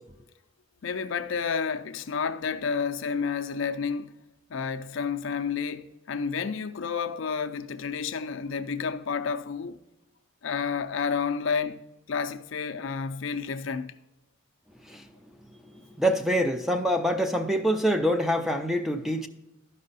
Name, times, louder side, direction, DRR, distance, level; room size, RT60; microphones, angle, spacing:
voice 1, 0.8-4.2 4.5-9.8 10.4-13.9, left 6 dB, 70° left, 0.5 m, -30 dB
voice 2, 16.0-19.3, equal, ahead, 0.5 m, -25 dB
12.0 x 5.4 x 4.0 m
head